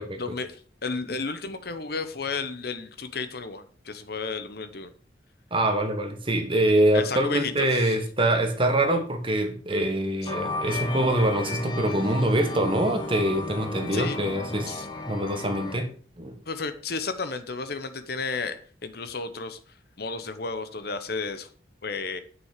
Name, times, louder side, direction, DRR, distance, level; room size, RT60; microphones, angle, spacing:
voice 1, 0.2-4.9 6.9-8.0 10.2-10.3 13.9-14.2 14.7-14.9 16.5-18.6 18.8-19.6 20.0-21.5 21.8-22.2, left 4 dB, 55° left, 1.0 m, -32 dB
voice 2, 5.5-14.8 15.1-15.9 16.2-16.3, right 1 dB, 30° right, 1.4 m, -24 dB
sound 1, 10.2-15.8, left 2 dB, 25° left, 1.7 m, -34 dB
9.6 x 6.1 x 6.7 m
head